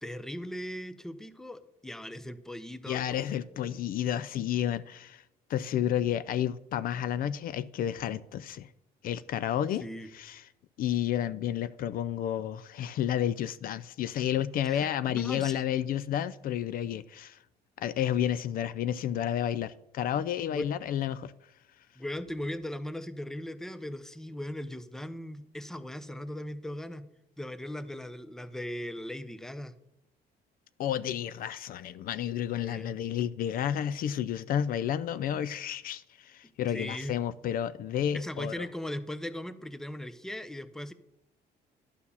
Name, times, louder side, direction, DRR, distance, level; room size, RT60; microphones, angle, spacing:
voice 1, 0.0-3.7 9.8-10.1 14.6-15.6 20.5-20.7 22.0-27.1 27.4-29.7 32.6-32.9 36.7-37.2 38.1-40.9, left 1 dB, 5° left, 0.6 m, -39 dB
voice 2, 2.9-5.2 5.5-8.7 9.0-9.8 10.1-10.4 10.8-17.4 17.8-21.3 30.8-38.7, left 10 dB, 60° left, 0.4 m, -31 dB
11.0 x 4.6 x 7.0 m
cardioid pair, 110°, 17 cm